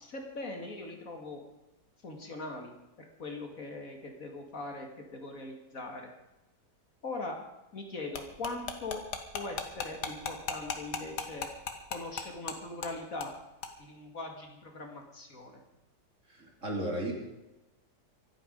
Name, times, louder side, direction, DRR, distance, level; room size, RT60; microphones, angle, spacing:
voice 1, 0.0-1.4 2.0-2.7 3.0-4.9 5.1-6.1 7.0-7.4 7.7-9.0 9.3-11.5 11.9-13.3 13.8-15.6, left 2 dB, 55° left, 3 dB, 2.5 m, -41 dB
sound 1, 8.1-12.6 12.8-12.9 13.2-13.3 13.6-13.7, left 6 dB, 75° left, 2.0 m, -36 dB
voice 2, 16.3-17.1, right 1 dB, 45° right, 0 dB, 3.5 m, -34 dB
25.0 x 8.8 x 5.3 m, 0.97 s
omnidirectional pair, 1.8 m